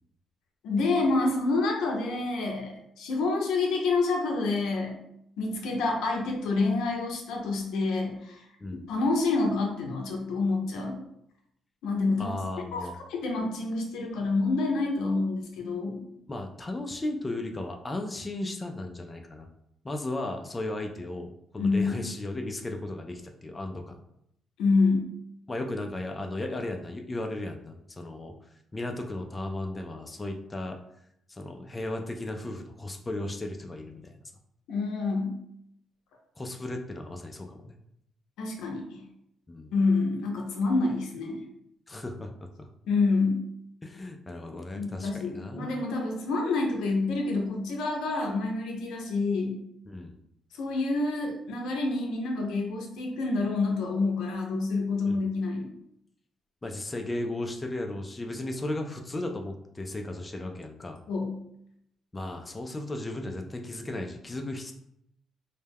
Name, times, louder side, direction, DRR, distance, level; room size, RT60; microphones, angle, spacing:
voice 1, 0.6-5.0 5.4-8.4 8.9-11.0 11.8-12.4 12.7-16.0 21.6-22.0 24.6-25.1 34.7-35.3 38.4-39.0 39.7-41.4 42.8-43.4 44.7-49.6 50.5-55.7 61.1-61.3, left 3 dB, 90° left, 1 dB, 0.5 m, -27 dB
voice 2, 12.2-13.0 16.3-19.5 19.8-24.0 25.5-28.3 28.7-30.8 31.3-34.2 36.4-37.7 39.5-39.7 41.9-42.7 43.8-45.8 49.9-50.2 55.0-55.2 56.6-61.0 62.1-64.7, left 2 dB, 20° left, 3 dB, 0.3 m, -35 dB
2.2 x 2.1 x 3.3 m, 0.76 s
cardioid pair, 90°, 0 cm